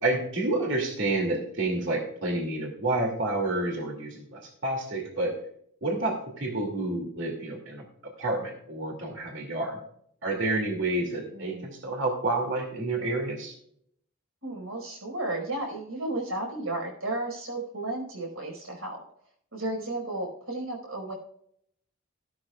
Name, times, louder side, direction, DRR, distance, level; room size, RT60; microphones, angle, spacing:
voice 1, 0.0-5.3 5.8-7.8 8.2-9.8 10.2-13.5, right 2 dB, 60° right, 1 dB, 2.5 m, -29 dB
voice 2, 11.3-11.7 14.4-19.0 19.5-21.1, right 2 dB, 85° right, 1 dB, 5.0 m, -33 dB
14.5 x 12.5 x 2.4 m, 0.68 s
head